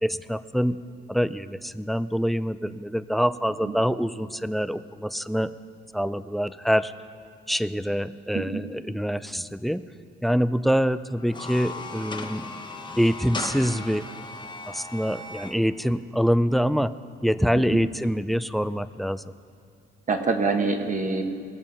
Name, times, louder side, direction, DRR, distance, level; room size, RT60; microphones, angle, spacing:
voice 1, 0.0-0.8 1.1-5.5 5.9-6.9 7.5-9.8 10.2-12.4 13.0-14.1 14.7-17.0 17.2-19.2, equal, ahead, 15 dB, 0.3 m, -25 dB
sound 1, 11.2-15.5, left 3 dB, 25° left, 1.3 m, -37 dB
voice 2, 20.1-21.2, right 4 dB, 40° right, 5 dB, 1.3 m, -25 dB
20.0 x 7.2 x 5.5 m, 2.4 s
cardioid pair, 90°, 20 cm